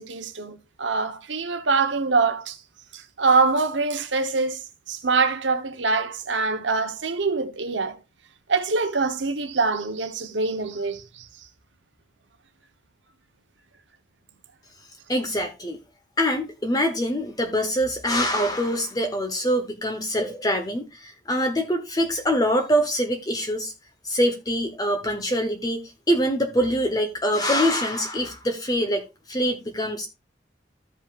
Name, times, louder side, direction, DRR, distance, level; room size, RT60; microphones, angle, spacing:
voice 1, 0.0-2.6 2.9-4.6 4.9-8.0 8.5-11.3, right 4 dB, 90° right, 1.1 m, -24 dB
voice 2, 15.1-15.8 16.2-23.7 24.0-29.0 29.3-30.1, equal, 20° left, 1.2 m, -24 dB
14.5 x 5.5 x 2.5 m
head